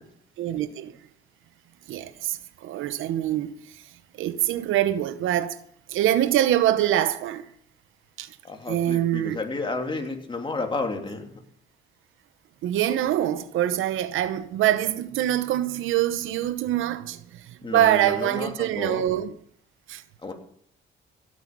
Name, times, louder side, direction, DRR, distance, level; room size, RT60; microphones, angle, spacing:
voice 1, 0.4-0.9 1.9-3.8 4.2-5.6 5.9-7.4 8.2-8.4 8.7-9.4 12.6-19.3 19.9-20.0, right 12 dB, 85° right, 0.9 m, -24 dB
voice 2, 8.4-11.3 17.6-19.0 20.2-20.3, left 3 dB, 25° left, 3.1 m, -31 dB
16.5 x 8.7 x 6.1 m
cardioid pair, 90°, 20 cm